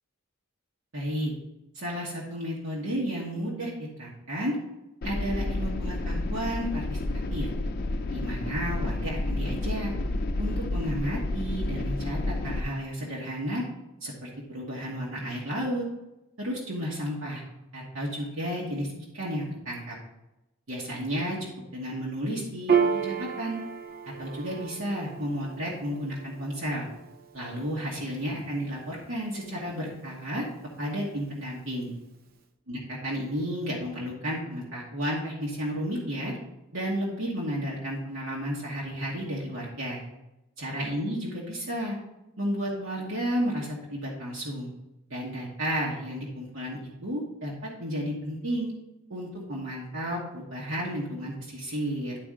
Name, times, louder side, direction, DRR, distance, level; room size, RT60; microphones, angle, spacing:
voice 1, 0.9-1.3 1.7-4.5 5.0-7.0 7.3-7.5 8.1-9.9 10.4-13.6 14.0-15.9 16.4-17.4 17.7-20.0 20.7-23.6 24.2-26.9 27.3-30.5 30.8-31.9 32.7-36.3 36.7-40.0 40.6-42.0 42.4-44.7 45.1-48.7 49.1-52.2, equal, 75° right, -5 dB, 1.5 m, -32 dB
sound 1, 5.0-12.6, left 2 dB, 45° left, 0.5 m, -30 dB
Piano, 22.7-29.6, right 6 dB, 45° right, 0.5 m, -32 dB
11.0 x 4.3 x 3.7 m, 0.94 s
head